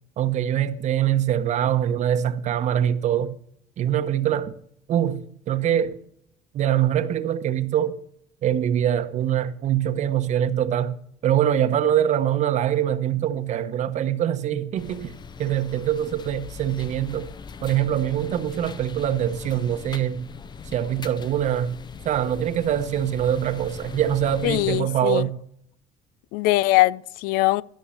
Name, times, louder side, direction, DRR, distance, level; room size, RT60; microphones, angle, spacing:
voice 1, 0.2-3.3 3.8-4.5 4.9-6.0 6.5-8.0 8.4-11.0 11.2-15.1 15.4-17.3 17.6-20.3 20.7-21.8 22.0-25.4, right 10 dB, 55° right, 0.9 m, -23 dB
sound 1, 14.8-24.8, left 5 dB, 30° left, 0.6 m, -41 dB
voice 2, 24.4-25.3 26.3-27.6, left 19 dB, 80° left, 0.4 m, -21 dB
13.0 x 5.5 x 7.2 m
cardioid pair, 105°, 15 cm